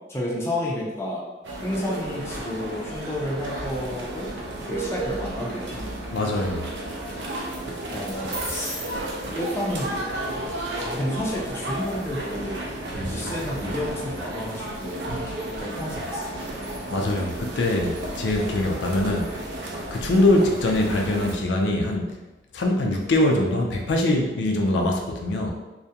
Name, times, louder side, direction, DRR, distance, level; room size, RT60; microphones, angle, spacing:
voice 1, 0.1-1.2 1.6-4.3 4.6-5.9 7.9-8.8 9.3-10.0 10.8-16.6, left 1 dB, 15° left, -4 dB, 0.5 m, -31 dB
sound 1, 1.4-21.3, right 1 dB, 75° right, 0.5 m, -33 dB
sound 2, 4.4-4.9 7.2-7.6 7.9-10.0, right 2 dB, 35° right, 0.7 m, -38 dB
voice 2, 6.1-6.7 16.9-19.3 19.9-22.1 22.5-25.5, left 1 dB, 80° left, 2 dB, 0.4 m, -23 dB
2.3 x 2.1 x 2.7 m, 1.1 s
head